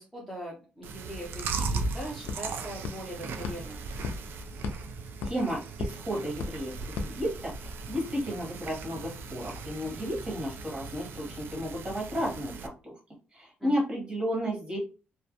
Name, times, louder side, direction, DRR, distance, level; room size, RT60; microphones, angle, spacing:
voice 1, 0.0-3.8 13.6-13.7, equal, ahead, -4 dB, 0.6 m, -41 dB
Chewing mastication, 0.8-12.7, right 4 dB, 75° right, 0.3 m, -38 dB
sound 1, 1.8-7.9, left 4 dB, 80° left, 0.3 m, -40 dB
voice 2, 5.2-6.7 7.0-13.0 13.3-14.8, equal, 25° right, -3 dB, 1.1 m, -33 dB
2.3 x 2.1 x 2.7 m, 0.35 s
cardioid pair, 135°, 4 cm